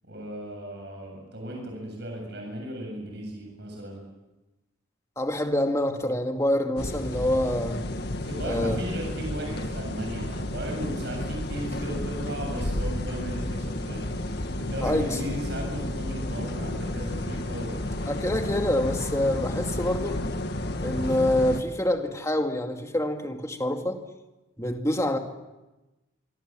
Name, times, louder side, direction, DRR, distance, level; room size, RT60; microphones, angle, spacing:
voice 1, 0.0-4.0 8.2-17.8, right 1 dB, 55° right, 1 dB, 7.4 m, -36 dB
voice 2, 5.2-7.8 8.4-8.8 14.8-15.2 18.1-20.2 20.8-24.0 24.6-25.2, left 1 dB, 15° left, 4 dB, 2.3 m, -26 dB
sound 1, 6.8-21.6, left 1 dB, 55° left, 1.8 m, -31 dB
26.0 x 25.0 x 7.7 m, 1.1 s
head